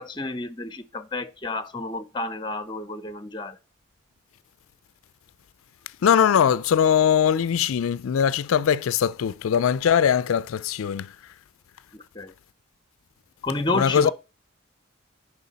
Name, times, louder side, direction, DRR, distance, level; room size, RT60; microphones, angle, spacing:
voice 1, 0.0-3.6 11.9-12.3 13.4-14.1, left 2 dB, 20° left, 0.7 m, -30 dB
voice 2, 6.0-11.1 13.7-14.1, left 8 dB, 90° left, 0.4 m, -21 dB
10.5 x 4.7 x 4.1 m
head